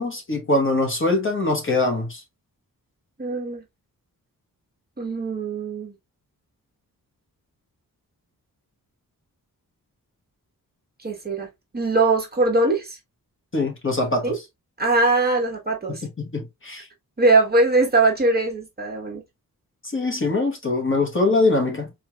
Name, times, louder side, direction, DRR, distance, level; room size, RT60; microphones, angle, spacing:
voice 1, 0.0-2.2 13.5-14.4 15.9-16.9 19.9-21.9, left 2 dB, 35° left, 1.2 m, -23 dB
voice 2, 3.2-3.6 5.0-5.9 11.0-11.5 11.7-13.0 14.2-14.4 14.8-16.0 17.2-19.2, right 3 dB, 25° right, 1.2 m, -21 dB
4.2 x 3.1 x 2.3 m
wide cardioid pair, 140°, 36 cm